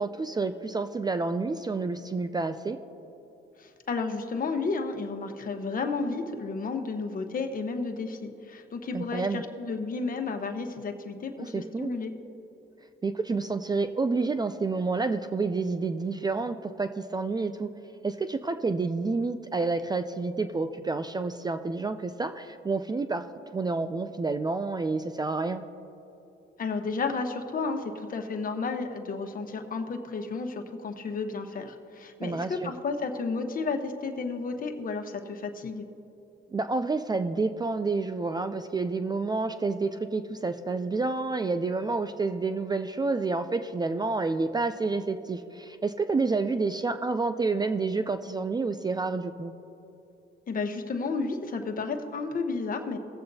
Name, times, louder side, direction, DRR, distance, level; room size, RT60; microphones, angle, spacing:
voice 1, 0.0-2.8 8.9-9.4 11.4-11.9 13.0-17.7 18.0-23.3 23.5-25.6 32.2-32.7 36.5-49.5, right 3 dB, 20° right, 10 dB, 0.4 m, -29 dB
voice 2, 3.6-12.1 26.6-35.8 50.5-53.0, left 4 dB, 45° left, 5 dB, 1.0 m, -32 dB
18.5 x 7.7 x 2.7 m, 2.9 s
cardioid pair, 90°, 20 cm